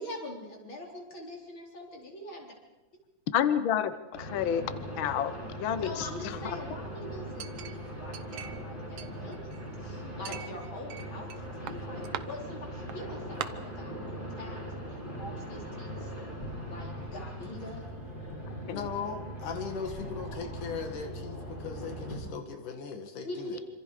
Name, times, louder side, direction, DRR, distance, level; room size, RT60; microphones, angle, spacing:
voice 1, 0.0-2.5 5.8-14.6 14.9-16.1 16.7-17.9 23.2-23.6, left 1 dB, 40° left, 0 dB, 4.8 m, -43 dB
voice 2, 3.3-3.9 4.2-4.6 5.0-5.3 5.6-6.6 18.7-18.8, left 9 dB, 70° left, 12 dB, 1.2 m, -29 dB
sound 1, 4.1-22.2, equal, 15° left, 7.2 m, -40 dB
Chink clink, 7.4-8.7 9.0-9.8 10.3-11.4 11.7-12.2 12.9-13.0 13.4-13.5, right 10 dB, 65° right, 1.5 m, -40 dB
voice 3, 18.7-23.6, left 5 dB, 85° left, 5 dB, 3.5 m, -38 dB
27.0 x 26.5 x 5.0 m, 1.1 s
omnidirectional pair, 3.5 m